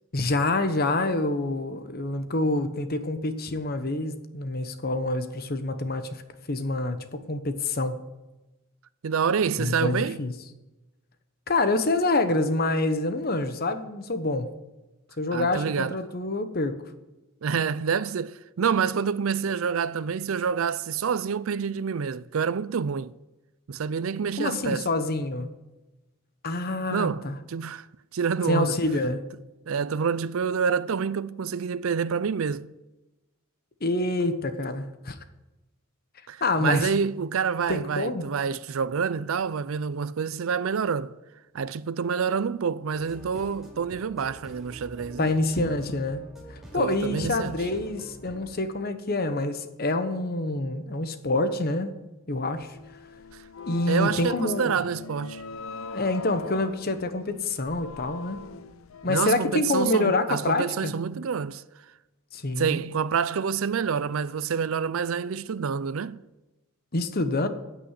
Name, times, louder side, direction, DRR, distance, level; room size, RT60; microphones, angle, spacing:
voice 1, 0.1-6.2 6.5-8.0 9.6-10.3 11.5-14.5 15.2-16.8 24.4-25.5 26.4-27.4 28.5-29.2 33.8-35.1 36.4-36.9 37.7-38.3 45.2-51.9 52.3-52.8 53.6-54.7 55.9-58.4 59.0-60.9 62.3-62.8 66.9-67.5, left 2 dB, 45° left, 1.1 m, -27 dB
voice 2, 9.0-10.2 15.3-16.0 17.4-23.1 23.7-24.9 26.9-27.9 28.1-28.7 29.7-32.7 36.3-41.1 41.5-45.3 46.8-47.5 53.9-55.4 59.1-61.6 62.6-66.2, right 6 dB, 75° right, 0.5 m, -27 dB
sound 1, 42.9-48.4, right 1 dB, ahead, 4.1 m, -46 dB
sound 2, 52.6-59.4, left 5 dB, 75° left, 0.6 m, -40 dB
15.5 x 6.2 x 8.2 m
head